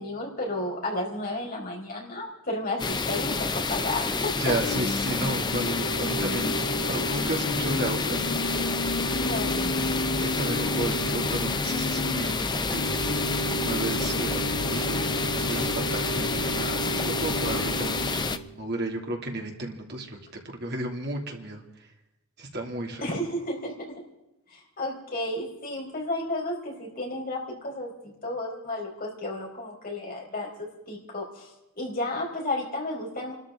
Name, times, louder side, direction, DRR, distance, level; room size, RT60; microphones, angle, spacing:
voice 1, 0.0-4.6 9.2-9.6 23.0-24.0 24.5-31.5 31.8-33.3, left 1 dB, 40° left, -2 dB, 4.3 m, -32 dB
sound 1, 2.8-18.4, left 4 dB, 20° left, 0.6 m, -29 dB
Organ / Church bell, 4.4-18.5, equal, 90° left, 1.8 m, -32 dB
voice 2, 4.4-8.4 10.2-13.2 13.6-21.6 22.4-23.1, right 2 dB, 50° right, 1 dB, 2.6 m, -33 dB
28.5 x 13.5 x 3.7 m, 0.96 s
head